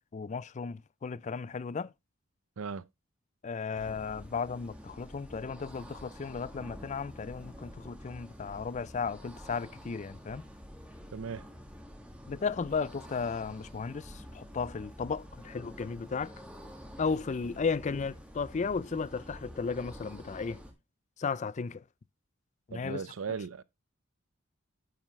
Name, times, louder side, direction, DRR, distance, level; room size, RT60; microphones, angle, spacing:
voice 1, 0.1-1.9 3.4-10.4 12.3-16.3 17.0-20.6 21.2-21.8 22.7-23.0, left 5 dB, 35° left, 0.4 m, -35 dB
voice 2, 2.6-2.9 11.1-11.4 22.7-23.6, right 5 dB, 85° right, 0.6 m, -37 dB
sound 1, 3.7-20.7, equal, 5° right, 1.9 m, -48 dB
9.8 x 7.4 x 3.1 m
head